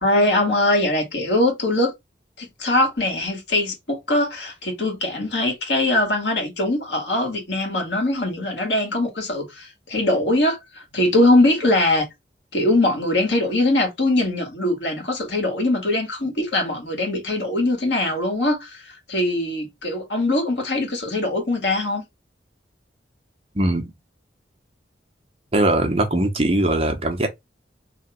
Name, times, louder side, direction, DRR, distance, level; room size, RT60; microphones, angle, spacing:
voice 1, 0.0-1.9 2.4-12.1 12.5-22.0, left 1 dB, 80° left, 2.0 m, -22 dB
voice 2, 23.5-23.9 25.5-27.3, right 1 dB, 35° right, 0.8 m, -20 dB
3.2 x 2.8 x 4.4 m
head